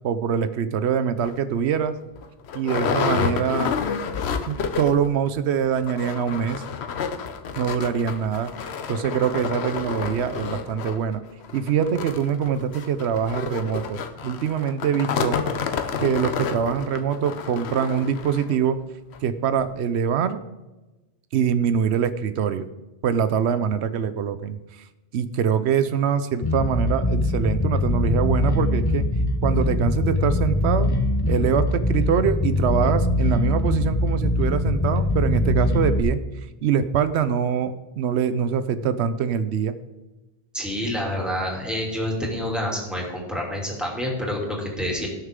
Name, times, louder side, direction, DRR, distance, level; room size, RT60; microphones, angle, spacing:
voice 1, 0.0-2.0 2.5-3.7 4.5-6.6 7.6-8.5 8.9-11.2 11.5-15.4 16.0-18.8 19.2-20.4 21.3-22.7 23.0-24.9 25.1-29.1 29.4-30.9 31.3-39.8, right 7 dB, 85° right, 12 dB, 0.9 m, -24 dB
sound 1, 1.2-1.4 1.9-2.0 2.2-5.1 5.4-5.5 5.8-18.6 19.1-19.2 19.6-19.7, left 6 dB, 80° left, 1.0 m, -29 dB
Bass guitar, 26.4-36.0, left 2 dB, 25° left, 0.8 m, -22 dB
voice 2, 40.5-45.1, left 1 dB, ahead, -2 dB, 2.8 m, -28 dB
17.0 x 6.5 x 3.7 m, 1.1 s
omnidirectional pair, 1.1 m